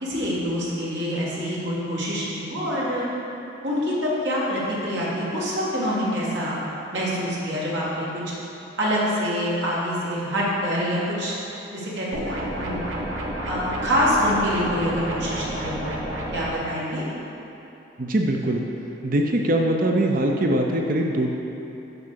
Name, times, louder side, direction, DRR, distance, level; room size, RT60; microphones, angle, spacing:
voice 1, 0.0-3.1 3.6-6.6 6.9-8.2 8.8-11.3 11.7-12.9 13.1-16.0 16.3-17.0, equal, 65° right, -6 dB, 2.0 m, -26 dB
sound 1, 12.1-16.5, right 1 dB, 80° right, 1.3 m, -30 dB
voice 2, 18.0-18.6 19.0-21.3, right 1 dB, 45° right, 1 dB, 0.5 m, -22 dB
6.9 x 5.4 x 6.8 m, 3.0 s
head